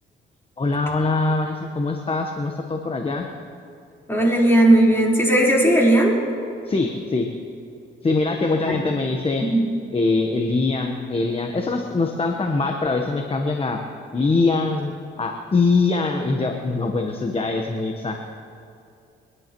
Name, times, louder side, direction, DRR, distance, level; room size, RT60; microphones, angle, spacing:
voice 1, 0.6-3.3 6.6-7.3 8.0-9.4 9.9-13.8 14.1-14.9 15.2-18.2, left 3 dB, 30° left, 3 dB, 1.1 m, -23 dB
voice 2, 4.1-6.2 8.7-8.8 9.4-9.6, right 1 dB, 10° left, -4 dB, 4.2 m, -16 dB
30.0 x 11.0 x 3.1 m, 2.5 s
cardioid pair, 90°, 20 cm